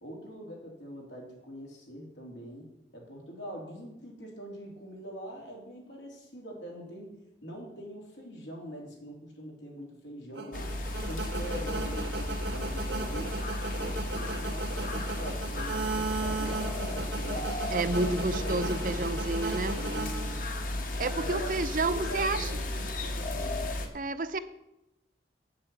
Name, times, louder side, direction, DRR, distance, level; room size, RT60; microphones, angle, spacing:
voice 1, 0.0-10.8 11.1-13.4 13.7-17.5 17.9-18.7 19.6-20.4 20.9-23.7, equal, 85° left, -1 dB, 3.3 m, -43 dB
sound 1, 10.3-20.8, right 3 dB, 80° right, 1.2 m, -36 dB
sound 2, 10.5-23.9, left 1 dB, 50° left, 1.2 m, -34 dB
voice 2, 17.7-19.8 21.0-22.5 23.9-24.4, right 2 dB, 45° right, 12 dB, 0.6 m, -30 dB
8.0 x 7.3 x 7.9 m, 0.89 s
head